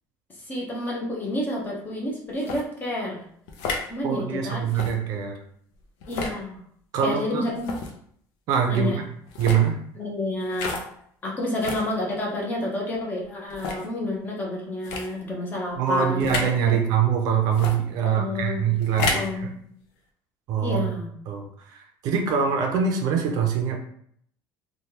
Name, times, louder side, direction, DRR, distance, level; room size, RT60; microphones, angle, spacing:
voice 1, 0.5-3.2 3.9-5.2 6.1-6.6 7.0-7.7 8.7-9.0 10.0-10.8 11.2-16.2 16.6-16.8 18.0-18.7 19.0-19.7 20.6-21.1, left 1 dB, 25° left, -2 dB, 0.7 m, -30 dB
sound 1, 2.4-2.6 3.5-3.9 4.7-4.9 6.0-6.4 7.6-7.9 9.3-9.6 10.5-10.9 11.6-11.9 12.6-12.7 13.5-13.9 14.8-15.1 16.2-16.5 17.5-17.8 18.8-19.3, left 4 dB, 85° left, 0.5 m, -30 dB
voice 2, 4.0-5.4 6.9-7.4 8.5-9.0 9.4-9.8 15.8-19.5 20.5-20.9 21.3-23.8, right 7 dB, 50° right, 2 dB, 0.5 m, -24 dB
3.2 x 2.2 x 2.8 m, 0.66 s
cardioid pair, 165°, 8 cm